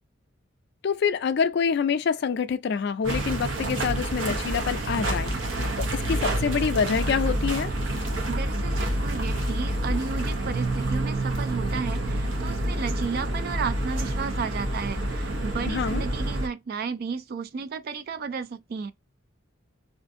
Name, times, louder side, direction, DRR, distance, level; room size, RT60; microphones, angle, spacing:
voice 1, 0.8-5.3 5.8-7.7 15.7-16.0, left 6 dB, 55° left, 0.3 m, -26 dB
sound 1, 3.0-16.5, right 1 dB, 75° right, 0.9 m, -28 dB
voice 2, 8.3-18.9, right 5 dB, 50° right, 0.3 m, -33 dB
2.6 x 2.5 x 2.4 m
head